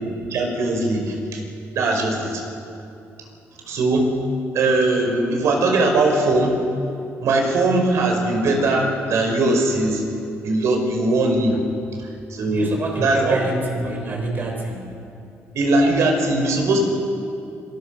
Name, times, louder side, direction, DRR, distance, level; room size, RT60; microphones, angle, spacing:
voice 1, 0.3-1.4 1.7-2.4 3.7-4.1 4.5-6.6 7.2-10.0 10.4-11.6 12.3-12.7 13.0-13.4 15.5-16.8, right 2 dB, 70° right, 2 dB, 5.6 m, -20 dB
voice 2, 12.4-15.1, right 2 dB, 35° right, 2 dB, 6.0 m, -28 dB
26.0 x 22.5 x 6.6 m, 2.6 s
cardioid pair, 110°, 5 cm